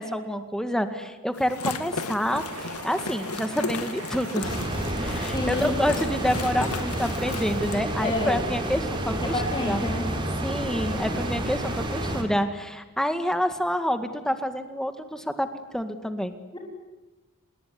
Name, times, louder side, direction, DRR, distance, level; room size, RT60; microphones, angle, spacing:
voice 1, 0.0-9.8 10.4-16.4, equal, 5° left, 8 dB, 1.9 m, -28 dB
sound 1, 1.3-7.8, left 4 dB, 80° left, 2.1 m, -35 dB
sound 2, 2.3-12.2, right 3 dB, 70° right, 3.5 m, -39 dB
sound 3, 4.4-12.2, right 1 dB, 20° right, 3.8 m, -30 dB
voice 2, 5.3-5.8 8.0-8.4 9.1-10.1 11.0-11.2 16.5-16.6, left 2 dB, 20° left, -1 dB, 3.8 m, -29 dB
27.5 x 20.5 x 9.7 m, 1.2 s
head